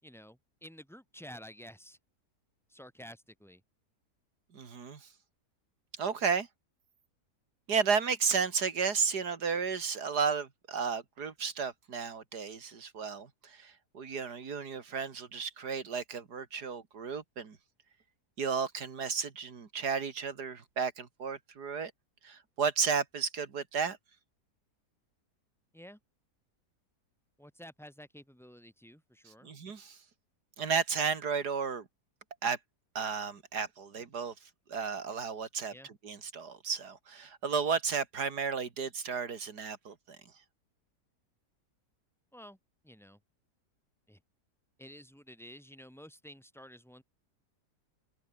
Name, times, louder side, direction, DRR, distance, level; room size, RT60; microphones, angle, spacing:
voice 1, 0.0-2.0 2.7-3.6 25.7-26.0 27.4-29.5 35.7-35.9 42.3-42.6 42.8-43.2 44.1-44.2 44.8-47.0, equal, ahead, 4.5 m, -51 dB
voice 2, 4.5-5.1 6.0-6.5 7.7-17.6 18.4-21.9 22.2-24.0 29.4-30.0 30.6-31.9 32.4-32.6 32.9-34.3 34.7-40.2, right 6 dB, 75° right, 2.7 m, -33 dB
open air
omnidirectional pair, 1.7 m